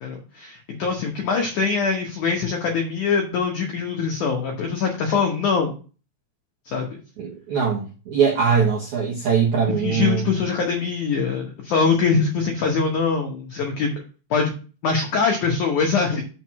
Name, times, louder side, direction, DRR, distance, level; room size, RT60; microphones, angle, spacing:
voice 1, 0.0-5.7 6.7-7.0 9.8-14.0 14.3-14.5 14.8-16.2, left 5 dB, 90° left, 1.7 m, -23 dB
voice 2, 7.2-10.2, right 6 dB, 70° right, 1.7 m, -21 dB
6.6 x 4.5 x 5.9 m
omnidirectional pair, 5.2 m